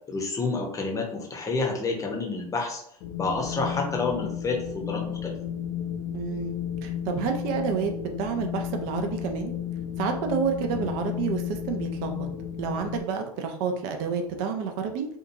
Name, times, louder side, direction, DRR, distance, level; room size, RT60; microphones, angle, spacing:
voice 1, 0.1-2.8 3.2-5.3 10.7-10.9, left 3 dB, 15° left, 0 dB, 0.8 m, -29 dB
Wind, 3.0-13.0, left 9 dB, 45° left, 0.4 m, -33 dB
voice 2, 6.1-6.5 6.8-9.5 10.0-12.3 12.6-15.1, right 6 dB, 50° right, 5 dB, 0.6 m, -29 dB
2.7 x 2.4 x 2.6 m, 0.70 s
hypercardioid pair, 85°, 20 cm